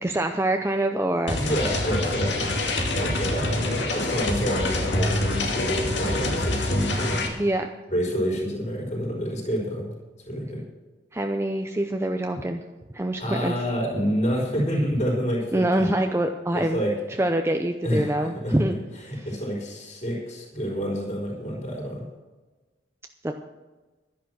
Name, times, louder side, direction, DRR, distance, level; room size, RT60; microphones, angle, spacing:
voice 1, 0.0-1.4 7.4-7.7 11.1-12.6 12.9-13.5 15.5-16.8 17.2-18.7 19.2-19.3 23.2-23.3, right 1 dB, 15° right, 5 dB, 0.6 m, -25 dB
sound 1, 1.3-7.3, left 2 dB, 75° left, 2.3 m, -26 dB
voice 2, 1.3-2.6 2.9-7.3 7.9-9.9 10.3-10.6 13.2-15.9 16.5-16.9 17.8-18.7 19.1-22.0, equal, 40° left, -3 dB, 4.6 m, -28 dB
11.5 x 10.5 x 6.3 m, 1.2 s
head